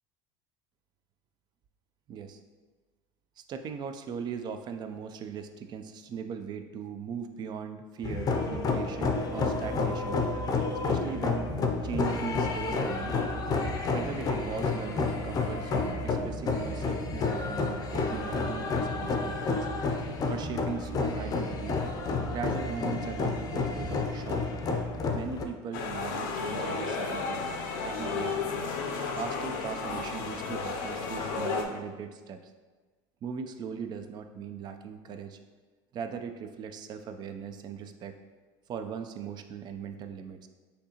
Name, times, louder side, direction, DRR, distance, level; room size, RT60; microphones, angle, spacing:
voice 1, 2.1-2.4 3.4-10.2 10.8-11.5 11.8-13.2 13.9-19.7 20.3-21.8 22.3-24.4 25.1-27.4 27.8-28.7 29.1-32.5 33.2-35.4 35.9-38.1 38.7-40.5, right 6 dB, 40° right, 8 dB, 0.4 m, -39 dB
sound 1, 8.0-25.4, left 3 dB, 35° left, 0.6 m, -30 dB
sound 2, 25.7-31.6, left 4 dB, 80° left, 0.6 m, -33 dB
6.3 x 2.8 x 2.9 m, 1.3 s
supercardioid pair, 105°, 11 cm